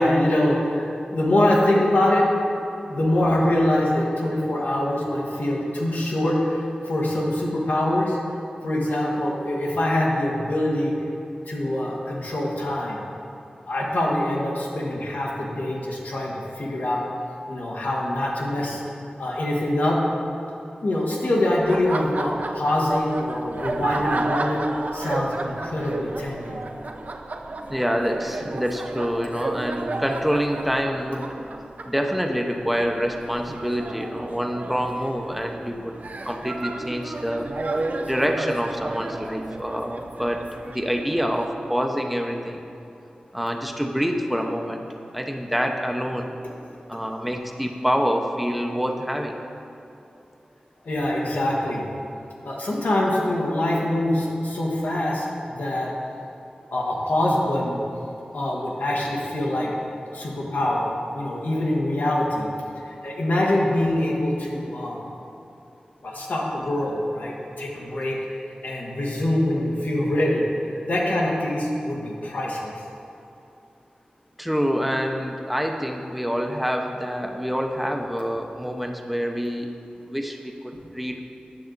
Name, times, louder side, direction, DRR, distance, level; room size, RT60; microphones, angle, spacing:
voice 1, 0.0-2.3 2.8-8.2 8.6-10.9 11.5-13.0 13.7-17.0 17.5-18.8 19.2-20.0 20.8-24.6 24.9-26.6 47.1-47.2 50.8-51.8 52.4-55.9 56.7-57.8 58.3-59.7 60.1-62.5 62.8-65.0 66.0-72.7, left 1 dB, 85° left, -3 dB, 1.4 m, -24 dB
Laughter, 21.6-41.4, right 2 dB, 60° right, 0.5 m, -32 dB
voice 2, 27.7-31.3 31.8-36.0 36.2-37.5 38.1-40.5 40.7-42.6 43.3-44.9 45.1-46.4 46.9-49.4 74.4-79.7 80.0-80.5 80.9-81.2, equal, 5° right, 3 dB, 0.7 m, -26 dB
9.6 x 6.3 x 3.9 m, 2.7 s
cardioid pair, 45°, 3 cm